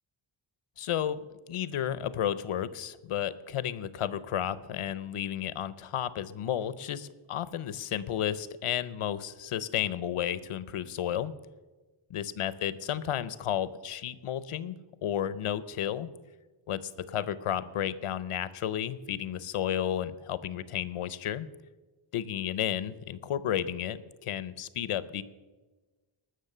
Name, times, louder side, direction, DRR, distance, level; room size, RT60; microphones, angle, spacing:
voice 1, 0.8-1.2 1.5-11.3 12.1-16.1 16.7-21.5 22.1-25.2, left 10 dB, 85° left, 16 dB, 0.8 m, -32 dB
19.5 x 6.5 x 6.7 m, 1.3 s
wide cardioid pair, 95°, 50 cm